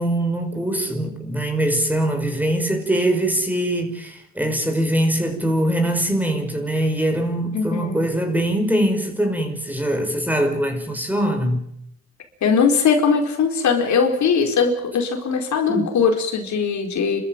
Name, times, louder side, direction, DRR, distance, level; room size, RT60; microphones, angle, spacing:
voice 1, 0.0-11.6 15.7-15.9, right 1 dB, 5° right, 5.5 m, -22 dB
voice 2, 7.5-8.0 12.4-17.2, left 5 dB, 70° left, 4.6 m, -20 dB
29.5 x 14.0 x 9.2 m
cardioid pair, 90°, 30 cm